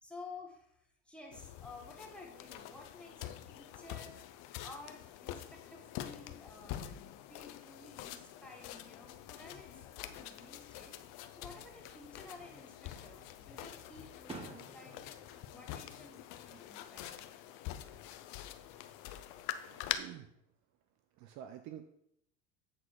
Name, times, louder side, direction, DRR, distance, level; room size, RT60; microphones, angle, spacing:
voice 1, 0.0-4.2 4.6-6.8 7.3-11.0 11.3-15.1 15.5-17.3, left 3 dB, 5° left, -1 dB, 1.6 m, -53 dB
sound 1, 1.3-19.9, left 13 dB, 55° left, 0.7 m, -46 dB
sound 2, 9.4-16.2, left 7 dB, 35° left, 1.1 m, -61 dB
Fireworks, 12.6-13.2 13.6-16.8 17.1-17.6 19.2-20.0, right 3 dB, 15° right, 1.4 m, -53 dB
voice 2, 19.7-20.3 21.2-21.9, right 10 dB, 50° right, 8 dB, 0.7 m, -48 dB
8.0 x 4.2 x 4.7 m, 0.74 s
supercardioid pair, 100°, 37 cm